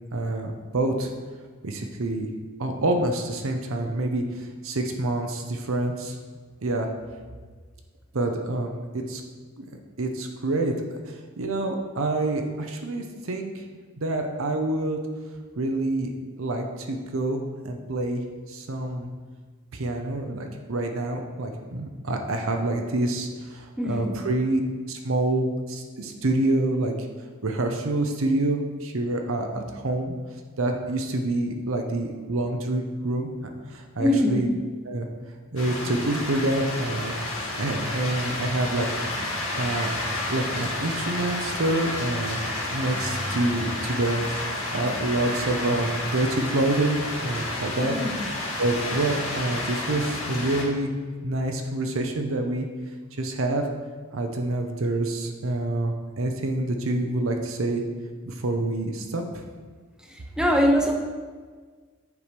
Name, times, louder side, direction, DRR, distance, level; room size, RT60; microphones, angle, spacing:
voice 1, 0.1-1.1 1.6-2.3 2.6-6.2 6.6-6.9 8.1-8.7 9.1-9.2 9.6-9.7 10.0-10.7 11.1-13.7 14.0-15.0 15.6-16.1 16.4-19.1 19.7-24.6 24.9-26.9 27.4-30.1 30.6-34.5 34.9-35.1 35.5-37.1 37.6-38.9 39.6-42.4 42.7-44.3 44.7-47.9 48.6-50.9 51.2-52.7 53.2-53.6 54.1-57.8 58.3-59.4, right 2 dB, 70° right, 3 dB, 0.8 m, -27 dB
voice 2, 23.8-24.1 34.0-34.5 47.8-48.1 60.0-60.9, equal, 5° right, 1 dB, 0.8 m, -23 dB
sound 1, 35.6-50.6, left 1 dB, 80° left, 1.9 m, -31 dB
8.3 x 4.7 x 5.2 m, 1.5 s
head